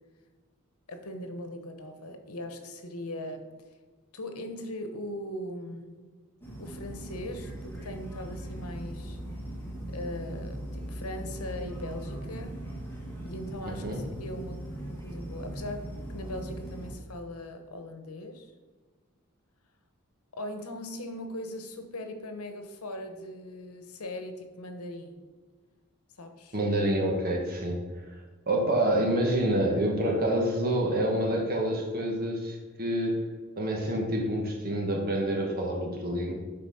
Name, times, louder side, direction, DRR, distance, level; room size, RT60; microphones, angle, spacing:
voice 1, 0.9-3.5 4.1-6.1 6.6-9.2 9.9-12.5 13.2-14.6 15.0-18.5 20.3-25.2 26.2-26.6, left 1 dB, 85° left, 6 dB, 1.0 m, -39 dB
sound 1, 6.4-16.9, right 1 dB, 10° left, 1.7 m, -39 dB
voice 2, 26.5-27.8 28.5-33.2 33.6-36.3, right 1 dB, 45° right, 0 dB, 1.3 m, -27 dB
7.9 x 4.1 x 5.5 m, 1.4 s
head